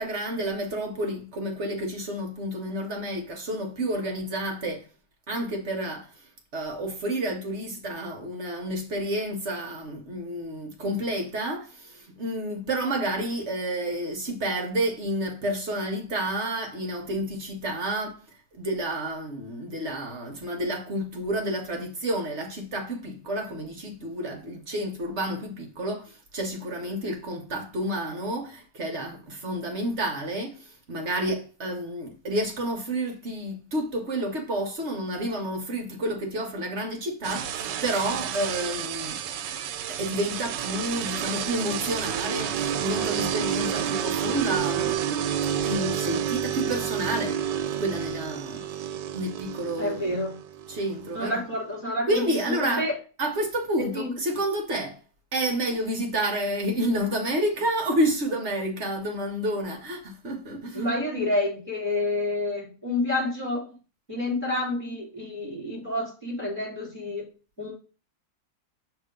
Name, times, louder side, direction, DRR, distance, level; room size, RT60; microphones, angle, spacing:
voice 1, 0.0-4.9 5.3-6.1 6.5-18.2 18.6-39.2 39.9-44.9 45.6-47.4 47.8-48.6 49.1-50.2 50.7-51.4 52.0-52.9 53.2-55.0 55.3-60.9, right 1 dB, 50° right, 0.9 m, -30 dB
sound 1, 37.2-51.8, right 9 dB, 90° right, 1.3 m, -30 dB
voice 2, 49.8-50.4 51.1-52.9 53.8-54.1 60.7-63.7 64.1-67.2 67.6-67.7, left 2 dB, 5° left, 3.1 m, -29 dB
6.7 x 2.9 x 5.0 m
omnidirectional pair, 1.9 m